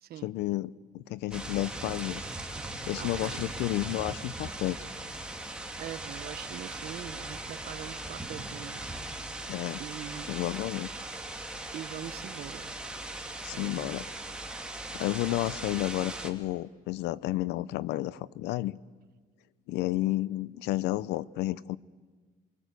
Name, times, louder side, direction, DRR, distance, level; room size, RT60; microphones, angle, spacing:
voice 1, 0.2-2.2 2.9-4.8 9.5-9.8 10.3-10.9 13.4-14.0 14.9-18.8 19.7-21.8, left 16 dB, 85° left, 20 dB, 0.7 m, -31 dB
sound 1, 1.3-16.3, right 2 dB, 5° right, 2.7 m, -39 dB
voice 2, 3.0-3.4 5.8-8.9 9.8-10.3 11.7-12.7 13.5-14.0, right 11 dB, 65° right, 12 dB, 1.2 m, -42 dB
28.5 x 23.5 x 8.3 m, 1.4 s
cardioid pair, 110°, 17 cm